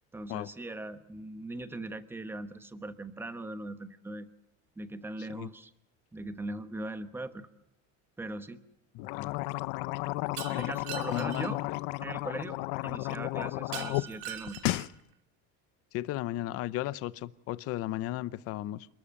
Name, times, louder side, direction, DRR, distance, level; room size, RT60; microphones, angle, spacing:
voice 1, 0.1-4.3 4.8-5.7 6.1-7.5 8.2-8.6 10.6-11.6 12.0-14.6, right 2 dB, 5° right, 11 dB, 1.0 m, -40 dB
voice 2, 8.9-9.3 10.5-10.7 11.1-11.8 15.9-18.9, left 15 dB, 45° left, 17 dB, 0.7 m, -35 dB
sound 1, 9.0-14.1 14.4-14.9, left 20 dB, 75° left, 0.8 m, -33 dB
Shatter, 10.4-11.5 13.7-15.0, right 11 dB, 50° right, 2.4 m, -42 dB
28.0 x 13.5 x 8.7 m, 0.85 s
cardioid pair, 175°, 34 cm